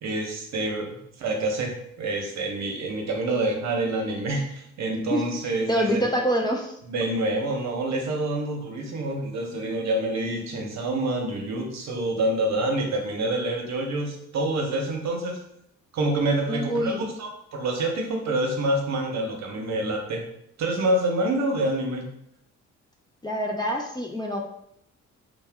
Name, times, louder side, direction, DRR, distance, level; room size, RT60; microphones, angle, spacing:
voice 1, 0.0-6.1 6.8-15.4 15.9-20.2 20.6-22.0, right 1 dB, 60° right, 1 dB, 0.8 m, -27 dB
voice 2, 5.7-6.7 16.5-17.0 23.2-24.4, equal, 15° left, 0 dB, 0.4 m, -26 dB
2.7 x 2.1 x 3.3 m, 0.73 s
cardioid pair, 90°, 30 cm